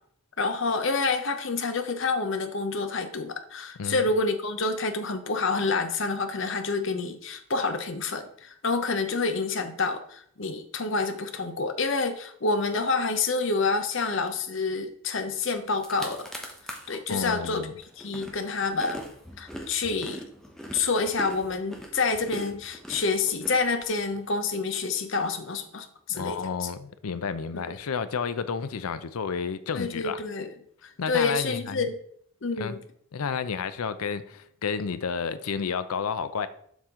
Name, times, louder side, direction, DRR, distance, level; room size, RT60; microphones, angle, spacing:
voice 1, 0.4-16.3 16.9-17.7 18.0-19.0 19.4-20.2 20.7-26.7 27.5-27.6 29.7-30.5 30.8-32.0 32.4-32.8, left 4 dB, 60° left, 0.8 m, -28 dB
sound 1, 15.4-15.5 15.7-17.0 17.4-24.2, equal, ahead, 0.8 m, -41 dB
voice 2, 17.1-17.7 26.1-30.2 31.0-31.9 32.6-32.8 33.1-36.5, left 6 dB, 85° left, 0.5 m, -31 dB
7.2 x 5.8 x 3.7 m
head